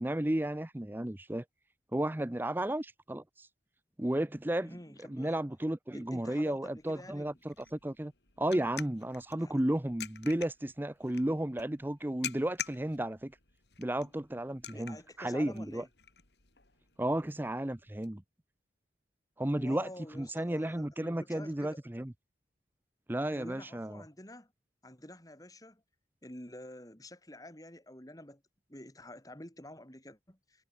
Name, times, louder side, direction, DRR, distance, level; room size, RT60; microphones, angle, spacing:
voice 1, 0.0-1.4 1.9-3.5 4.0-4.8 5.1-8.1 8.4-13.3 13.8-15.8 17.0-18.2 19.4-19.9 20.1-22.1 23.1-24.0, right 1 dB, 10° right, 0.6 m, -33 dB
voice 2, 4.5-5.4 5.9-7.4 9.4-9.6 14.7-15.9 19.5-21.8 23.3-24.5 24.8-25.8 26.2-28.4 28.7-30.6, left 1 dB, 20° left, 4.4 m, -49 dB
sound 1, 6.8-18.1, left 9 dB, 75° left, 5.3 m, -48 dB
head